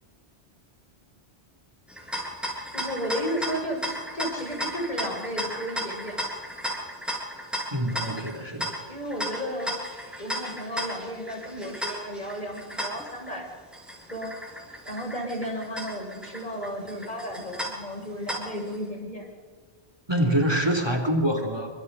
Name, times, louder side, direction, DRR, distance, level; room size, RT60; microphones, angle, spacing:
sound 1, 1.9-18.8, equal, ahead, 7.0 m, -35 dB
voice 1, 2.7-6.3 8.9-9.8 10.2-13.5 14.1-14.3 14.8-19.3, equal, 40° left, -1 dB, 7.6 m, -33 dB
voice 2, 7.7-8.8 20.1-21.7, right 1 dB, 20° right, 3 dB, 3.4 m, -25 dB
30.0 x 26.5 x 4.2 m, 1.5 s
omnidirectional pair, 1.1 m